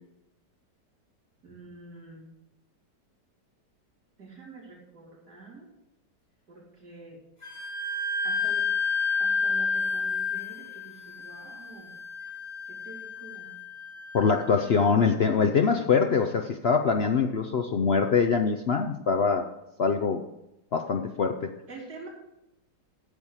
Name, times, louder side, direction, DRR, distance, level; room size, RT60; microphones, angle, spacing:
voice 1, 1.4-2.3 4.2-5.7 6.5-7.2 8.2-8.7 9.2-11.9 12.7-13.5 21.7-22.1, right 2 dB, 60° right, -5 dB, 3.7 m, -46 dB
Wind instrument woodwind instrument, 7.4-14.8, left 4 dB, 20° left, 3.5 m, -31 dB
voice 2, 14.1-19.4 19.8-20.2 20.7-21.5, left 5 dB, 80° left, 5 dB, 0.5 m, -24 dB
9.7 x 7.3 x 6.3 m, 0.87 s
omnidirectional pair, 1.9 m